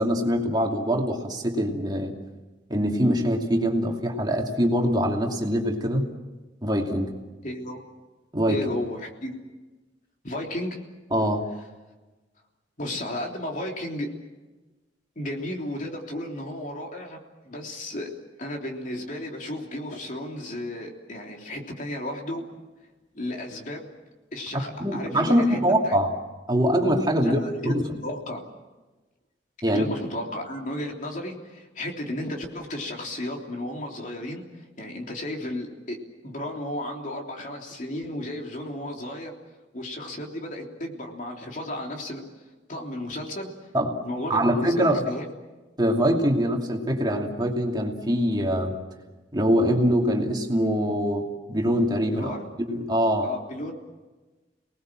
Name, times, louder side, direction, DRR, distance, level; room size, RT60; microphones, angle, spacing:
voice 1, 0.0-2.1 2.7-6.1 6.6-7.1 8.3-8.7 11.1-11.4 24.5-26.1 26.5-27.4 27.6-27.8 29.6-29.9 43.7-44.0 44.3-45.0 45.8-48.7 49.3-53.3, equal, 25° right, 1 dB, 2.6 m, -23 dB
voice 2, 7.4-7.8 8.5-9.3 10.2-10.8 12.8-14.1 15.1-17.2 17.4-18.1 18.4-22.4 23.1-24.0 24.3-25.6 25.8-26.0 27.2-28.4 29.7-34.5 34.8-36.0 36.2-39.3 39.7-42.2 42.7-43.5 44.0-45.3 52.1-52.5 53.2-53.7, left 1 dB, 45° left, 1 dB, 3.3 m, -33 dB
30.0 x 19.5 x 7.6 m, 1.2 s
head